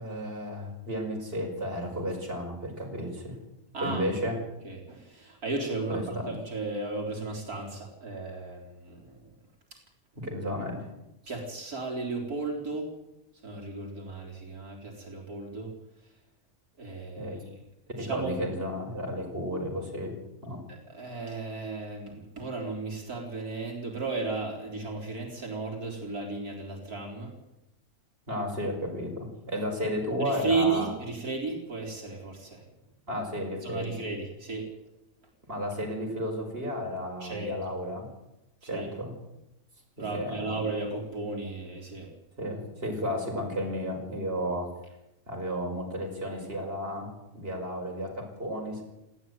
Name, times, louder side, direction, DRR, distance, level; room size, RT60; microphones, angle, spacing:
voice 1, 0.0-3.4 3.8-4.4 5.9-6.3 10.2-10.9 17.2-17.4 17.9-20.1 20.4-20.6 28.3-30.9 33.1-34.0 35.5-38.0 38.6-39.1 40.0-40.6 42.4-44.7 45.3-47.1 47.3-48.8, equal, 40° right, 1 dB, 5.4 m, -33 dB
voice 2, 3.7-4.1 4.6-9.2 11.3-12.9 13.4-15.7 16.8-17.4 18.0-18.3 20.7-27.3 30.2-32.6 33.6-34.7 37.2-37.6 38.6-38.9 40.0-42.1, right 3 dB, 85° right, 0 dB, 4.4 m, -34 dB
18.5 x 15.0 x 9.6 m, 0.89 s
omnidirectional pair, 1.5 m